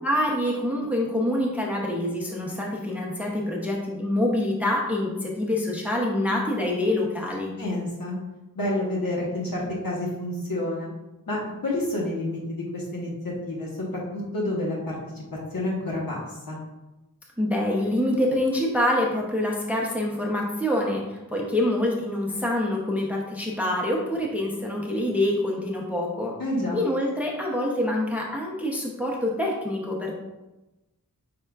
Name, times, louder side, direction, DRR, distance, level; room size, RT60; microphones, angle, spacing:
voice 1, 0.0-7.5 17.4-26.3 26.7-30.2, left 1 dB, 5° right, -2 dB, 0.6 m, -26 dB
voice 2, 7.6-8.2 8.5-10.9 11.3-15.2 15.5-16.6 26.4-26.8, left 1 dB, 70° left, -4 dB, 1.0 m, -29 dB
5.4 x 3.6 x 2.3 m, 1.0 s
wide cardioid pair, 80°, 35 cm